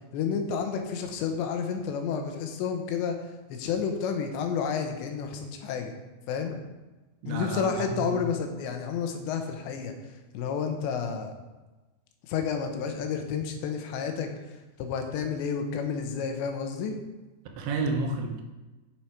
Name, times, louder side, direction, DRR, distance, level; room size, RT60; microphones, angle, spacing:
voice 1, 0.1-5.9 6.3-6.6 7.3-11.3 12.3-16.9, left 6 dB, 80° left, 5 dB, 3.1 m, -31 dB
voice 2, 7.2-8.2 17.6-18.4, right 3 dB, 80° right, 3 dB, 3.2 m, -31 dB
8.6 x 7.4 x 4.6 m, 1.1 s
omnidirectional pair, 5.3 m